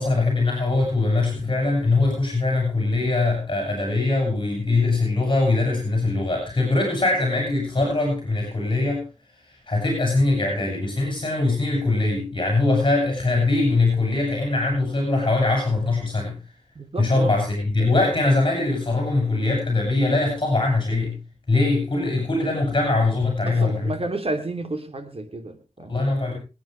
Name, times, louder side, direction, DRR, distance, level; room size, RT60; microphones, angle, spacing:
voice 1, 0.0-9.0 9.7-16.4 17.0-21.2 21.5-24.0 25.9-26.4, left 2 dB, 40° left, 1 dB, 7.2 m, -22 dB
voice 2, 16.7-17.4 23.4-25.9, right 2 dB, 55° right, 6 dB, 3.4 m, -31 dB
27.0 x 9.4 x 3.4 m, 0.31 s
wide cardioid pair, 85°, 12 cm